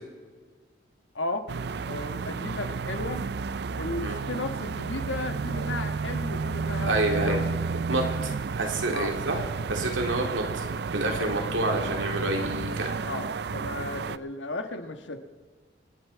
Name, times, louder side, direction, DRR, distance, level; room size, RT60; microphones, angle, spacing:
voice 1, 1.1-1.5 1.8-3.2 3.7-7.4 8.9-9.1 11.1-11.3 13.0-15.2, left 2 dB, 80° left, 7 dB, 1.5 m, -34 dB
sound 1, 1.5-14.2, right 4 dB, 60° right, 0.4 m, -31 dB
voice 2, 6.8-7.4 7.9-9.4 9.7-10.7 10.9-12.9, right 2 dB, 90° right, 2 dB, 2.8 m, -28 dB
27.0 x 9.8 x 4.7 m, 1.5 s
head